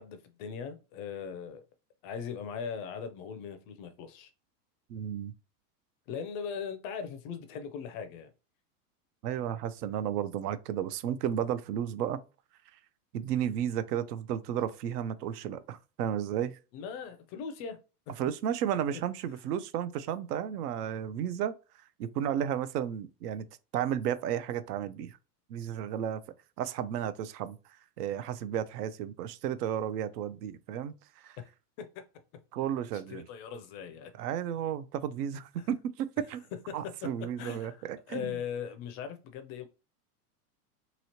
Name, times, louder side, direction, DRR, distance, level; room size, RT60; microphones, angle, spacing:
voice 1, 0.0-1.6 2.0-4.3 6.1-8.3 16.7-17.8 31.8-32.0 33.1-34.1 35.6-35.7 36.7-36.8 37.4-39.6, left 7 dB, 35° left, 0.4 m, -39 dB
voice 2, 4.9-5.3 9.2-12.2 13.1-16.6 18.2-21.5 22.0-23.5 23.7-25.2 25.5-26.2 26.6-27.6 28.0-31.4 32.5-33.3 34.2-36.4 36.7-38.4, right 10 dB, 80° right, 0.6 m, -33 dB
3.0 x 2.8 x 2.8 m
supercardioid pair, 130°, 47 cm